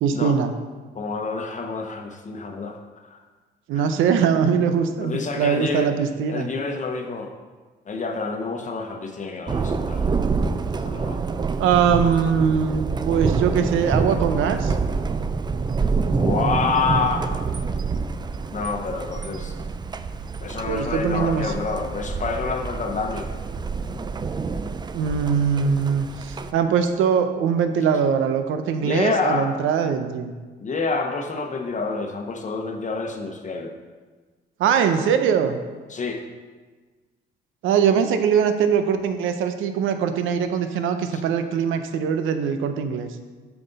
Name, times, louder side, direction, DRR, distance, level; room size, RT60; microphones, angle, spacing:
voice 1, 0.0-0.5 3.7-6.5 11.6-14.7 20.7-21.5 24.7-30.3 34.6-35.6 37.6-43.1, right 7 dB, 90° right, 9 dB, 0.6 m, -22 dB
voice 2, 0.9-2.8 3.0-3.2 3.7-3.8 5.0-7.3 7.9-11.2 16.1-17.4 18.5-19.5 20.4-23.3 28.8-29.5 30.6-33.7 35.9-36.2 41.1-41.2, left 4 dB, 40° left, 4 dB, 1.0 m, -28 dB
Thunder, 9.5-26.5, right 4 dB, 20° right, 0.4 m, -27 dB
7.4 x 5.9 x 4.0 m, 1.4 s
cardioid pair, 90°, 20 cm